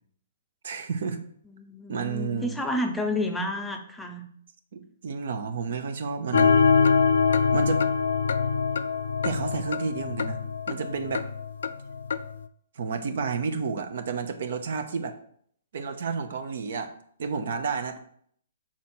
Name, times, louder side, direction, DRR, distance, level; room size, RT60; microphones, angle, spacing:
voice 1, 0.6-1.3 1.9-2.6 4.7-6.6 7.5-7.8 9.2-10.4 10.7-11.3 12.7-15.2 15.7-16.9 17.2-18.0, right 5 dB, 60° right, 8 dB, 0.8 m, -31 dB
voice 2, 1.5-4.3, left 1 dB, 5° left, 3 dB, 0.6 m, -30 dB
sound 1, 6.3-12.4, left 5 dB, 75° left, 0.4 m, -24 dB
6.3 x 4.3 x 4.4 m, 0.63 s
hypercardioid pair, 155°, 0 cm